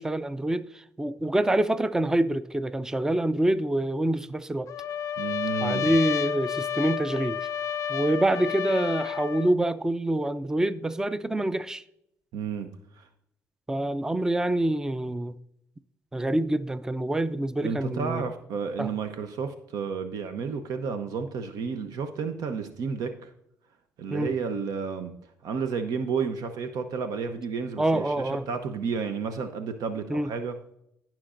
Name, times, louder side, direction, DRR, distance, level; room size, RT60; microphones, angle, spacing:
voice 1, 0.0-4.7 5.6-7.5 7.9-11.8 13.7-15.3 16.1-18.2 18.8-18.9 24.1-24.3 27.8-28.4 30.1-30.3, right 1 dB, 10° right, 0.4 m, -26 dB
Trumpet, 4.7-9.5, left 9 dB, 55° left, 0.4 m, -30 dB
voice 2, 5.2-5.9 12.3-12.7 13.0-13.1 17.6-23.3 24.0-25.1 25.4-30.6, right 5 dB, 75° right, 0.8 m, -31 dB
17.0 x 5.9 x 2.5 m
cardioid pair, 90°, 6 cm